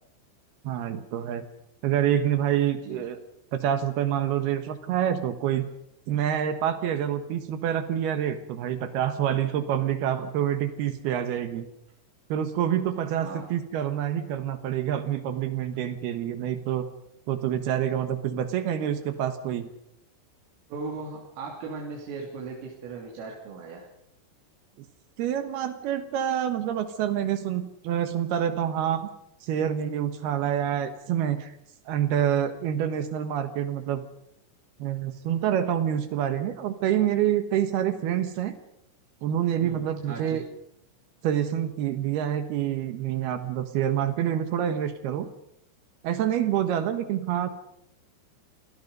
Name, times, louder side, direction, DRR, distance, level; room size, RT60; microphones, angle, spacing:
voice 1, 0.6-1.4 1.8-3.2 3.5-5.7 6.1-11.7 12.3-16.9 17.3-19.7 25.2-29.1 29.4-31.5 31.9-34.0 34.8-38.5 39.2-40.4 41.2-45.3 46.0-47.5, right 10 dB, 70° right, 10 dB, 2.6 m, -27 dB
voice 2, 13.2-13.5 20.7-23.9 39.6-40.4, right 4 dB, 85° right, -2 dB, 5.5 m, -38 dB
28.0 x 19.0 x 5.4 m, 0.78 s
omnidirectional pair, 5.8 m